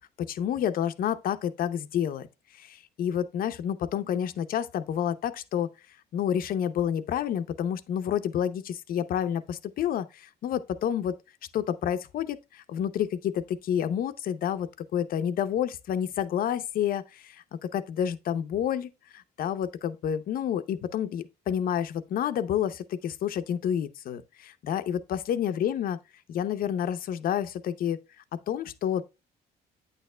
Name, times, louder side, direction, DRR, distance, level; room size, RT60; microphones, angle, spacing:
voice 1, 0.3-2.3 2.6-5.7 6.1-11.1 11.5-17.4 17.7-26.0 26.3-28.0 28.5-29.0, left 9 dB, 60° left, 0.7 m, -29 dB
8.9 x 6.6 x 2.2 m
cardioid pair, 110°, 17 cm